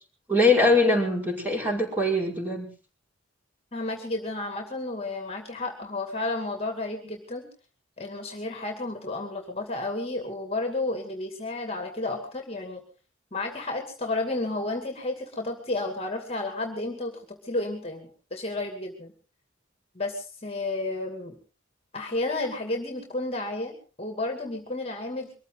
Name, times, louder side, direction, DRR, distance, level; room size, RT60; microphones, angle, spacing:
voice 1, 0.3-2.7, left 2 dB, 10° right, 0 dB, 5.5 m, -22 dB
voice 2, 3.7-7.4 8.0-12.8 13.3-19.1 19.9-21.4 21.9-25.3, left 2 dB, 30° left, 4 dB, 2.5 m, -32 dB
23.5 x 14.5 x 3.9 m, 0.37 s
head